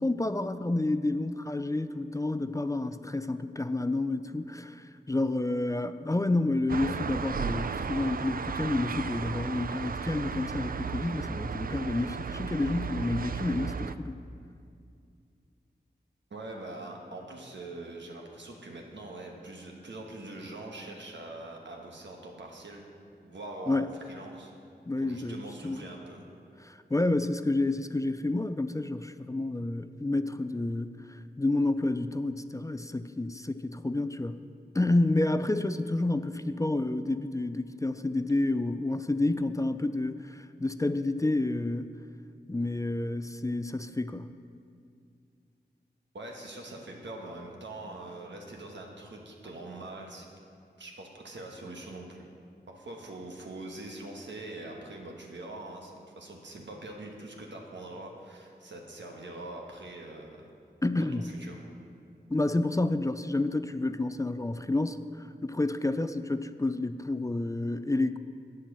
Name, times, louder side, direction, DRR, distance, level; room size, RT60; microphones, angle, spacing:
voice 1, 0.0-14.2 23.7-23.9 24.9-25.8 26.6-34.4 34.7-41.9 42.5-44.3 60.8-61.3 62.3-65.0 65.4-68.2, left 2 dB, 20° left, 11 dB, 0.4 m, -29 dB
sound 1, 6.7-13.9, right 6 dB, 55° right, 0.4 m, -34 dB
voice 2, 16.3-22.8 23.2-24.5 25.0-26.3 46.1-50.3 50.8-52.3 52.7-60.5 61.0-61.6, right 2 dB, 90° right, 0 dB, 1.3 m, -43 dB
8.7 x 7.4 x 6.7 m, 2.4 s
cardioid pair, 45°, 18 cm